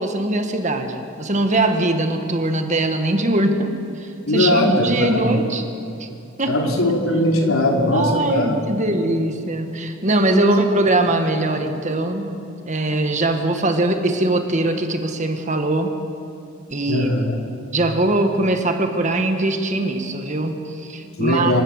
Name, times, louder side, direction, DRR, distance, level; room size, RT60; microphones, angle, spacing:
voice 1, 0.0-3.7 4.0-5.6 6.0-6.1 6.4-6.7 7.9-12.4 12.7-15.9 16.7-17.1 17.7-21.6, right 2 dB, 35° right, 6 dB, 1.5 m, -21 dB
voice 2, 4.3-5.3 6.5-8.5 10.3-10.5 16.9-17.2 21.2-21.6, left 1 dB, 85° left, 1 dB, 3.2 m, -19 dB
27.0 x 15.5 x 6.5 m, 2.7 s
head